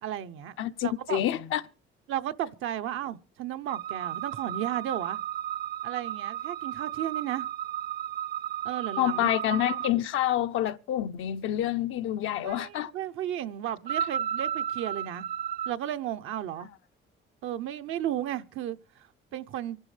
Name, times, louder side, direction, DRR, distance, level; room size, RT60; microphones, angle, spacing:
voice 1, 0.0-0.6 0.8-1.2 2.1-5.2 5.8-7.5 8.6-9.3 12.4-15.3 15.7-16.7 17.4-19.8, right 11 dB, 85° right, 0.7 m, -34 dB
voice 2, 0.6-1.6 9.0-12.9, left 12 dB, 85° left, 0.7 m, -28 dB
sound 1, 3.7-9.9 13.9-15.7, right 10 dB, 50° right, 0.6 m, -33 dB
25.0 x 11.5 x 3.3 m
cardioid pair, 90°, 20 cm